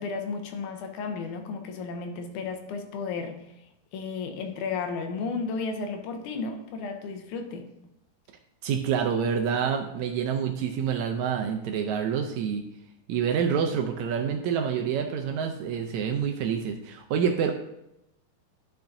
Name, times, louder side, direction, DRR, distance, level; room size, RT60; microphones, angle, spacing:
voice 1, 0.0-3.4 3.9-7.7, left 4 dB, 75° left, 5 dB, 2.2 m, -33 dB
voice 2, 8.6-12.6 13.1-17.5, right 7 dB, 80° right, 4 dB, 1.6 m, -27 dB
11.0 x 5.8 x 2.6 m, 0.86 s
omnidirectional pair, 3.8 m